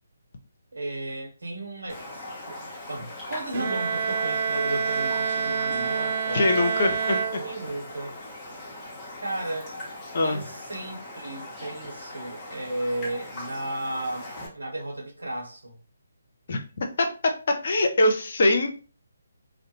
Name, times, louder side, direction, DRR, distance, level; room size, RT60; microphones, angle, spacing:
voice 1, 0.7-6.5 7.4-8.2 9.1-9.7 10.2-15.8, right 1 dB, 75° right, 1.0 m, -34 dB
Raindrop, 1.9-14.5, left 1 dB, 15° left, 0.8 m, -40 dB
Bowed string instrument, 3.5-8.0, right 5 dB, 40° right, 0.3 m, -28 dB
voice 2, 6.3-7.4 10.1-10.4 16.5-16.6 17.6-18.8, left 2 dB, 50° left, 0.6 m, -22 dB
2.4 x 2.0 x 2.9 m
figure-of-eight pair, 145°, 0 cm